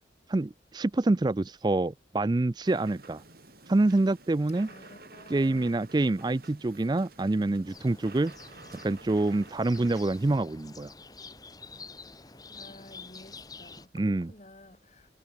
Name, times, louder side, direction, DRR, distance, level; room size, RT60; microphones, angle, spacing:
voice 1, 0.3-3.2 3.7-4.7 5.3-8.3 8.8-10.9 13.9-14.3, right 2 dB, 20° right, 0.4 m, -26 dB
sound 1, 2.6-10.4, right 3 dB, 55° right, 7.4 m, -51 dB
voice 2, 4.6-5.7 12.6-15.1, left 1 dB, 35° left, 4.9 m, -52 dB
sound 2, 7.7-13.9, left 4 dB, 20° left, 3.7 m, -48 dB
head